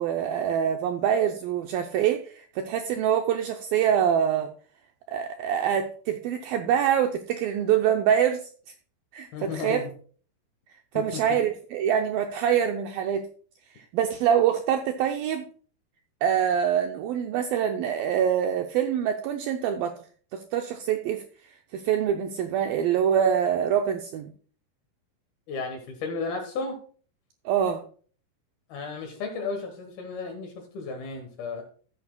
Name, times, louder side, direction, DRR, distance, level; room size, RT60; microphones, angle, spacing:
voice 1, 0.0-4.5 5.1-8.5 9.1-9.8 10.9-13.3 13.9-15.5 16.2-19.9 20.3-21.2 21.7-24.3 27.5-27.8, right 9 dB, 80° right, 5 dB, 2.1 m, -25 dB
voice 2, 9.3-9.9 10.9-11.4 25.5-26.8 28.7-31.6, left 4 dB, 70° left, 3 dB, 3.0 m, -34 dB
14.5 x 8.3 x 2.2 m, 0.44 s
omnidirectional pair, 4.7 m